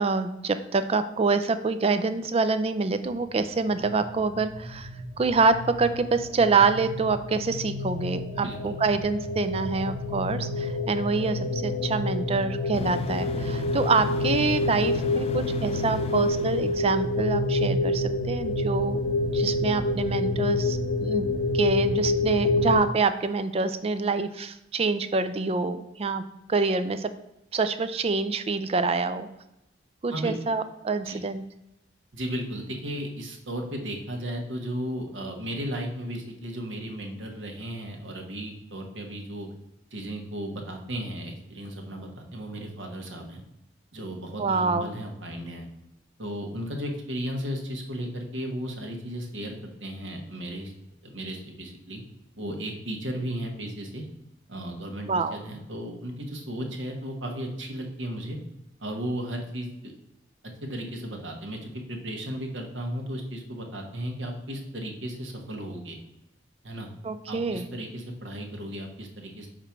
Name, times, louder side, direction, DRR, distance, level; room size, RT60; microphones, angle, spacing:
voice 1, 0.0-4.9 5.2-19.0 19.3-21.3 21.5-26.2 26.5-27.1 27.5-29.3 30.0-31.4 44.4-44.9 55.1-55.4 67.0-67.7, right 4 dB, 30° right, 11 dB, 0.4 m, -26 dB
sound 1, 3.5-22.8, left 2 dB, 80° left, 1.0 m, -28 dB
voice 2, 8.3-8.7 30.1-30.3 31.0-31.2 32.1-39.5 39.9-43.4 43.9-45.7 46.2-50.7 51.0-52.0 52.3-54.1 54.5-58.4 58.8-59.9 60.6-66.0 66.6-66.9 67.3-69.5, equal, 80° right, 2 dB, 1.4 m, -35 dB
sound 2, 12.7-17.2, left 2 dB, 30° left, 0.4 m, -37 dB
5.0 x 4.5 x 5.8 m, 0.89 s
head